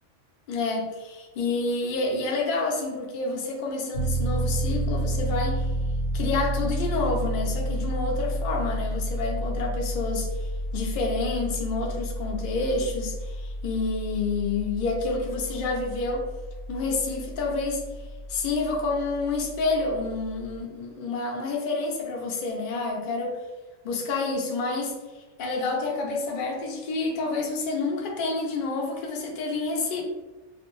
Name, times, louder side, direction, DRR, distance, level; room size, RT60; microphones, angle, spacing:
voice 1, 0.5-5.7 6.1-16.3 16.7-17.8 18.3-23.4 23.8-30.0, left 3 dB, 60° left, 0 dB, 0.6 m, -29 dB
Piano, 3.9-20.6, right 1 dB, 90° left, 1.1 m, -31 dB
2.4 x 2.2 x 2.9 m, 1.2 s
omnidirectional pair, 1.2 m